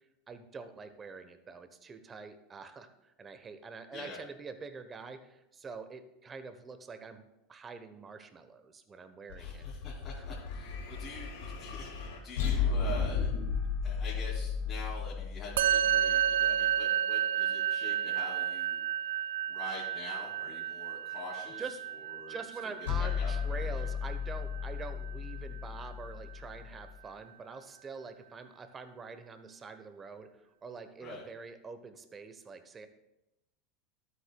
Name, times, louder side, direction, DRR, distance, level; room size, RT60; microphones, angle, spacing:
voice 1, 0.3-9.7 10.1-10.4 12.2-12.3 21.6-21.8 22.3-32.9, right 4 dB, 25° right, 10 dB, 0.9 m, -45 dB
sound 1, 9.3-16.6 22.9-27.0, left 6 dB, 75° left, 1.7 m, -35 dB
voice 2, 9.3-13.3 13.8-19.2 19.5-21.6 22.1-22.4 22.6-22.7 23.0-23.8 31.0-31.2, left 3 dB, 40° left, -6 dB, 2.6 m, -45 dB
Musical instrument, 15.6-25.1, right 10 dB, 75° right, 0.3 m, -31 dB
13.0 x 7.8 x 2.3 m, 0.90 s
hypercardioid pair, 85°, 0 cm